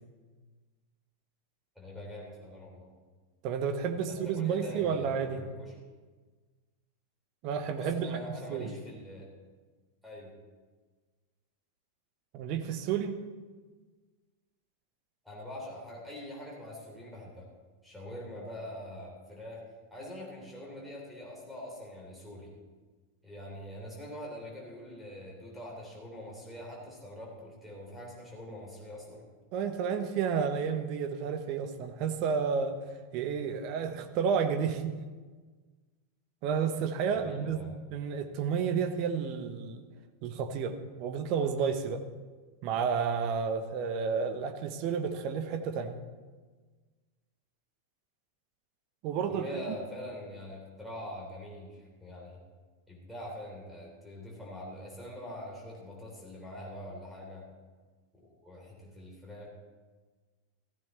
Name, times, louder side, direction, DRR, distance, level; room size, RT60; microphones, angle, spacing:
voice 1, 1.8-2.9 4.1-5.7 7.8-9.3 10.0-10.3 15.2-17.5 17.8-19.6 19.9-22.5 23.2-29.2 37.1-37.7 49.3-52.4 52.9-57.5 58.2-59.5, left 1 dB, ahead, -5 dB, 3.7 m, -44 dB
voice 2, 3.4-5.4 7.4-8.2 8.5-8.7 12.3-13.1 29.5-32.8 33.1-35.0 36.4-37.6 37.9-39.8 40.2-42.0 42.6-46.0 49.0-49.8, right 6 dB, 40° right, 8 dB, 1.1 m, -31 dB
15.0 x 14.5 x 3.3 m, 1.4 s
figure-of-eight pair, 90°, 0 cm